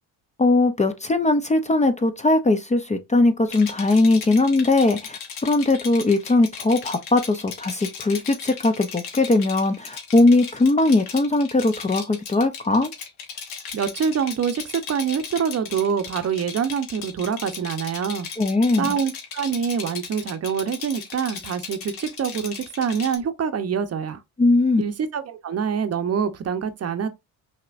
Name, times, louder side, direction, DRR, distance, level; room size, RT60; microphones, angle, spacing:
voice 1, 0.4-12.9 18.4-19.0 24.4-24.8, left 2 dB, 20° left, 0.6 m, -20 dB
Rattle, 3.5-23.2, left 6 dB, 85° left, 1.5 m, -37 dB
voice 2, 13.7-18.3 18.8-24.2 24.8-27.1, right 7 dB, 40° right, 0.8 m, -25 dB
5.8 x 2.9 x 2.5 m
cardioid pair, 100°, 37 cm